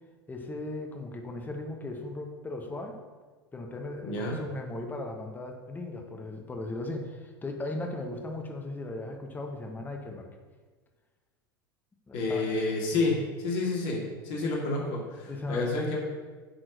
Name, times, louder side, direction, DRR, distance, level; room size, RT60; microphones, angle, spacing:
voice 1, 0.3-3.0 3.5-10.3 12.1-12.4 12.9-13.1 15.3-15.7, left 2 dB, 15° left, 2 dB, 1.3 m, -37 dB
voice 2, 4.0-4.4 12.1-13.1 13.4-16.0, left 3 dB, 55° left, -2 dB, 2.4 m, -29 dB
8.9 x 4.3 x 6.6 m, 1.4 s
figure-of-eight pair, 80°, 12 cm